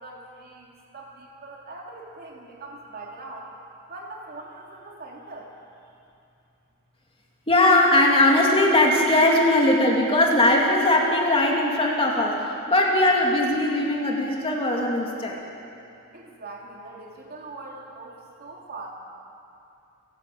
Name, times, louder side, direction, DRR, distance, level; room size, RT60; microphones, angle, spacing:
voice 1, 0.0-3.5 3.9-5.5 16.1-18.9, right 2 dB, 45° right, -1 dB, 3.1 m, -41 dB
voice 2, 7.5-12.4 12.7-15.4, left 1 dB, 25° left, -1 dB, 2.7 m, -20 dB
29.5 x 11.5 x 8.7 m, 2.7 s
head